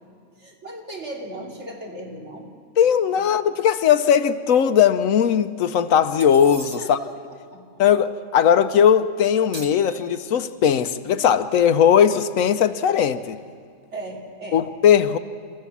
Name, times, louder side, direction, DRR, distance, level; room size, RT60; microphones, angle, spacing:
voice 1, 0.4-2.5 3.2-3.3 6.8-7.1 7.5-7.6 13.9-14.6, right 1 dB, 60° right, 3.2 m, -36 dB
voice 2, 2.8-7.0 7.8-13.4 14.5-15.2, left 8 dB, 85° left, 1.1 m, -18 dB
sound 1, 6.2-7.1 9.5-10.6, right 2 dB, 25° right, 0.8 m, -41 dB
29.0 x 15.0 x 7.2 m
omnidirectional pair, 1.4 m